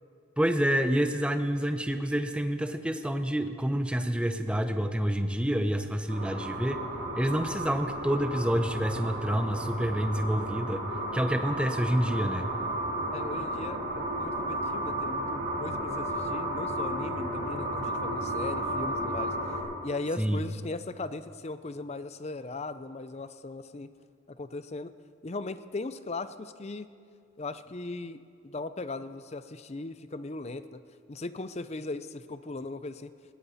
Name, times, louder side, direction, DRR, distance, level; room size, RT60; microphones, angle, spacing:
voice 1, 0.4-6.8 7.1-10.8 11.1-12.5 20.2-20.4, equal, 5° right, 7 dB, 0.7 m, -28 dB
sound 1, 6.1-19.6, right 1 dB, 70° right, 5.2 m, -33 dB
voice 2, 13.1-19.3 19.8-23.9 24.3-24.9 25.2-26.9 27.4-30.8 31.1-33.1, left 2 dB, 30° left, 12 dB, 0.5 m, -38 dB
20.0 x 17.0 x 4.2 m, 2.4 s
head